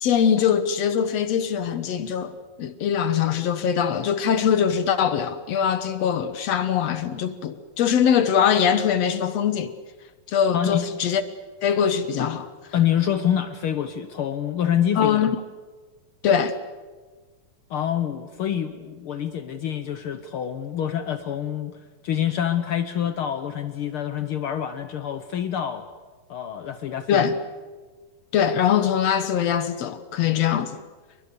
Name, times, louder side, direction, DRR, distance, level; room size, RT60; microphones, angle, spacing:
voice 1, 0.0-9.7 10.3-11.2 11.6-12.5 15.0-15.3 16.2-16.6 27.1-27.4 28.3-30.8, left 8 dB, 65° left, 1.9 m, -22 dB
voice 2, 10.5-10.8 12.7-15.4 17.7-25.8 26.3-27.3, left 9 dB, 85° left, 1.2 m, -26 dB
28.5 x 23.5 x 6.9 m
omnidirectional pair, 3.8 m